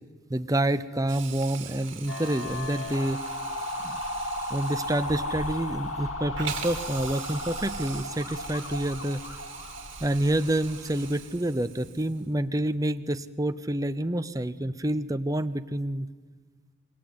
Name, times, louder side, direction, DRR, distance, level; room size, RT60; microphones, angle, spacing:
voice 1, 0.3-3.2 3.8-4.0 4.5-9.2 10.0-16.1, right 1 dB, 15° right, 11 dB, 0.7 m, -28 dB
Hiss, 1.1-12.3, right 8 dB, 60° right, 3.0 m, -43 dB
sound 1, 2.1-11.1, left 1 dB, 75° left, 2.2 m, -35 dB
26.0 x 22.5 x 8.7 m, 1.5 s
head